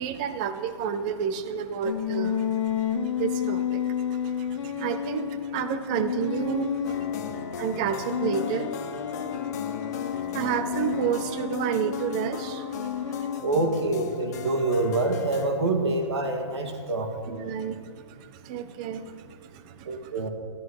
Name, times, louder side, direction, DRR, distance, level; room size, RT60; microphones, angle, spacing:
voice 1, 0.0-13.5 17.3-20.1, right 7 dB, 15° right, 11 dB, 0.4 m, -31 dB
sound 1, 1.8-7.5 8.1-13.4, left 9 dB, 75° left, 0.9 m, -31 dB
sound 2, 6.8-15.5, left 7 dB, 35° left, 0.8 m, -37 dB
voice 2, 13.4-17.5 19.9-20.3, right 2 dB, 65° right, 4 dB, 1.9 m, -26 dB
13.0 x 12.5 x 4.7 m, 2.2 s
hypercardioid pair, 175°, 15 cm